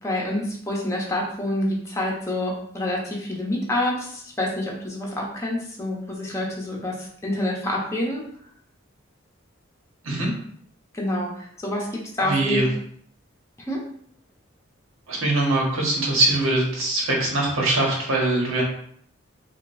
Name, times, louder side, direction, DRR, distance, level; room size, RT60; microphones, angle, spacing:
voice 1, 0.0-7.0 7.2-8.2 11.0-11.3 11.6-12.7 13.7-13.8, left 1 dB, 15° left, -3 dB, 0.8 m, -27 dB
voice 2, 12.2-12.7 15.1-18.6, right 2 dB, 85° right, -2 dB, 1.3 m, -22 dB
5.0 x 2.5 x 2.6 m, 0.63 s
head